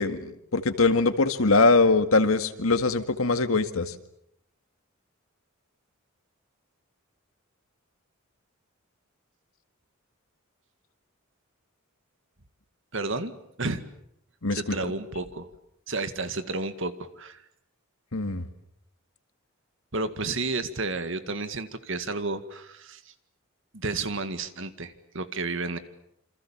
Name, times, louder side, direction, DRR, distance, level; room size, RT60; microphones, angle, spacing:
voice 1, 0.0-3.9 14.4-14.9 18.1-18.4, left 3 dB, 85° left, 9 dB, 1.9 m, -22 dB
voice 2, 12.9-13.3 13.6-13.8 14.5-15.5 15.9-17.4 19.9-23.1 23.7-25.8, right 3 dB, 65° right, 10 dB, 2.1 m, -31 dB
28.0 x 27.0 x 7.3 m, 0.75 s
head